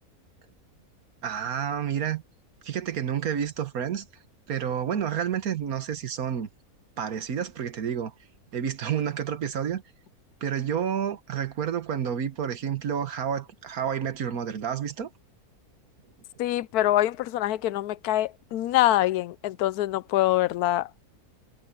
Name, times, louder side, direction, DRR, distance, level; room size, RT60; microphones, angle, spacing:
voice 1, 1.2-2.2 2.6-4.1 4.5-6.5 7.0-8.1 8.5-9.8 10.4-15.1, right 8 dB, 70° right, 1.7 m, -29 dB
voice 2, 16.4-20.9, left 14 dB, 85° left, 1.1 m, -24 dB
omnidirectional pair, 1.6 m